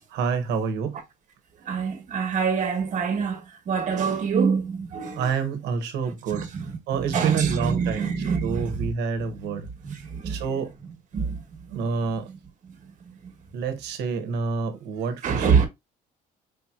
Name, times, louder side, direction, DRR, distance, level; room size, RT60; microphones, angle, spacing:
voice 1, 0.1-1.0 5.2-6.5 6.9-8.1 8.4-9.7 10.2-10.7 11.7-12.3 13.5-15.7, right 5 dB, 85° right, 1.1 m, -28 dB
voice 2, 1.7-5.3 6.3-6.8 7.1-8.9 9.8-10.4 11.1-11.4 13.2-13.3 15.2-15.7, right 6 dB, 50° right, 1.4 m, -25 dB
5.1 x 2.9 x 2.4 m
cardioid pair, 110°, 17 cm